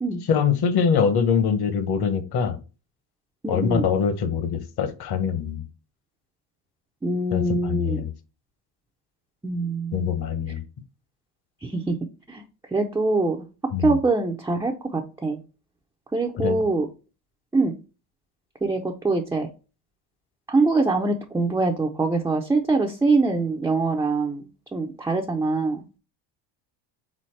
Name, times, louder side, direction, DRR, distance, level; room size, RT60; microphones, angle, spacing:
voice 1, 0.3-2.6 3.5-5.7 7.3-8.1 9.9-10.6 13.7-14.0 16.4-16.6, left 6 dB, 50° left, 11 dB, 1.0 m, -23 dB
voice 2, 3.4-3.8 7.0-8.0 9.4-10.0 11.6-12.0 12.3-12.4 12.7-13.4 13.8-15.4 16.1-16.9 17.5-17.8 18.6-19.5 20.5-25.8, right 3 dB, 5° right, 1 dB, 0.3 m, -24 dB
4.2 x 4.0 x 3.1 m, 0.33 s
supercardioid pair, 95°, 50 cm